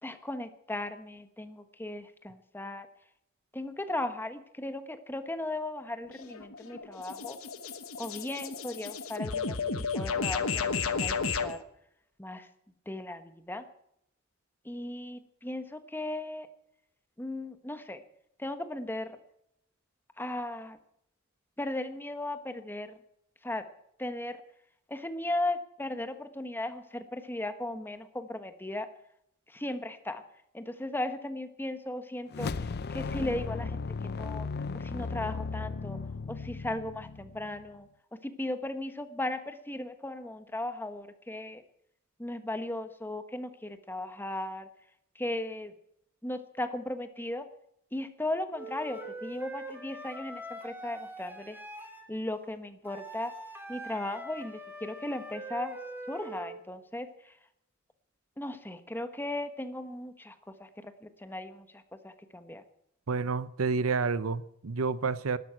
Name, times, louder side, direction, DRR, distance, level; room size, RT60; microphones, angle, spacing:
voice 1, 0.0-2.9 3.5-7.4 8.0-9.6 9.9-11.6 12.2-12.5 12.9-13.6 14.6-16.5 17.2-18.0 18.4-19.2 20.2-20.8 21.6-23.0 23.4-23.6 24.0-24.4 24.9-28.9 29.5-30.2 30.5-34.5 34.7-36.0 36.3-37.9 38.2-41.6 42.2-44.7 45.1-45.7 46.2-47.5 47.9-51.6 52.1-53.3 53.7-55.8 56.1-57.3 58.4-62.6, left 1 dB, 10° left, 9 dB, 1.1 m, -37 dB
sound 1, 6.1-11.6, left 5 dB, 80° left, 1.2 m, -33 dB
sound 2, 32.3-37.7, left 4 dB, 50° left, 0.5 m, -36 dB
Wind instrument woodwind instrument, 48.5-52.1 52.9-56.6, right 1 dB, 10° right, 2.4 m, -43 dB
voice 2, 63.1-65.4, right 4 dB, 85° right, 16 dB, 0.7 m, -29 dB
12.5 x 12.0 x 8.9 m, 0.77 s
head